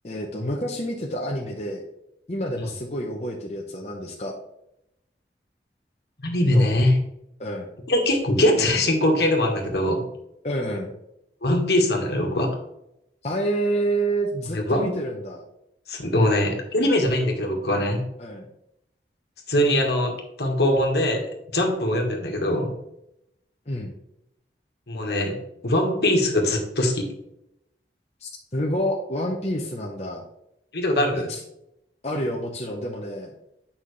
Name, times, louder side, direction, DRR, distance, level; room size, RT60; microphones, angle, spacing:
voice 1, 0.0-1.8 2.3-4.3 6.5-6.7 7.4-7.7 10.4-10.9 13.2-15.4 18.2-18.5 23.7-23.9 28.2-30.2 31.3-31.4 32.0-33.3, right 1 dB, 35° left, -1 dB, 0.9 m, -28 dB
voice 2, 6.2-6.9 7.9-10.0 11.4-12.6 14.5-14.9 15.9-18.0 19.5-21.3 21.5-22.7 24.9-25.4 25.6-27.1 30.7-31.3, left 1 dB, 70° left, 2 dB, 1.6 m, -22 dB
9.1 x 5.7 x 3.3 m, 0.82 s
head